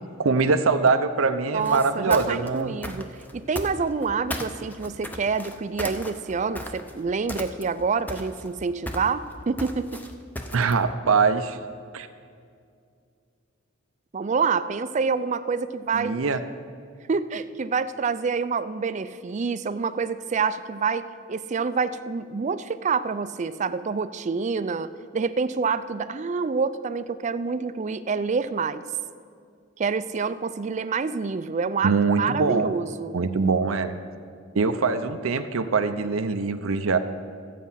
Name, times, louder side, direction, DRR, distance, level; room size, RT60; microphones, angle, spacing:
voice 1, 0.0-2.8 10.5-11.6 11.9-12.1 15.9-16.4 31.8-32.7 33.1-33.9 34.5-37.0, right 4 dB, 90° right, 8 dB, 0.6 m, -23 dB
voice 2, 1.5-3.1 3.3-10.0 14.1-16.2 17.1-28.8 29.8-33.2, right 5 dB, 35° right, 13 dB, 0.4 m, -27 dB
sound 1, 1.6-4.1 4.3-7.0 7.3-7.8 8.1-10.8, left 1 dB, 10° left, 0.7 m, -35 dB
13.5 x 8.3 x 5.6 m, 2.3 s
head